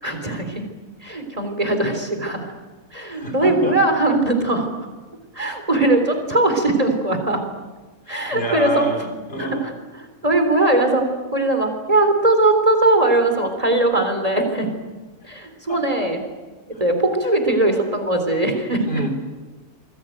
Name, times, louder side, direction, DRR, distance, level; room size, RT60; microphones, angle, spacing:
voice 1, 0.0-0.6 1.0-2.5 2.9-4.7 5.3-7.4 8.1-8.8 9.4-9.7 10.0-11.0 11.3-14.7 15.2-16.2 16.8-18.9, right 2 dB, 25° right, 5 dB, 3.8 m, -20 dB
voice 2, 3.1-3.8 8.3-9.7 15.2-15.3 15.7-16.1 18.8-19.1, right 2 dB, 45° left, 3 dB, 4.3 m, -28 dB
27.5 x 22.0 x 9.2 m, 1.3 s
omnidirectional pair, 1.5 m